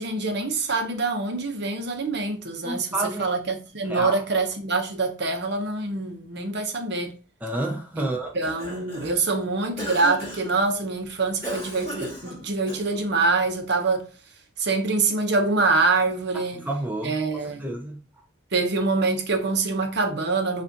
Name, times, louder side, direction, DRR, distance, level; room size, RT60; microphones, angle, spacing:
voice 1, 0.0-7.1 8.0-8.1 8.3-14.1 14.6-16.6 17.0-17.6 18.5-20.6, right 3 dB, 55° right, 0.8 m, -25 dB
voice 2, 2.6-3.3 3.8-4.2 7.4-8.3 16.3-18.0, right 1 dB, 10° right, 0.4 m, -30 dB
Cough, 8.2-9.2 9.8-10.6 11.4-13.1, equal, 20° left, 2.2 m, -36 dB
6.6 x 2.5 x 2.8 m
head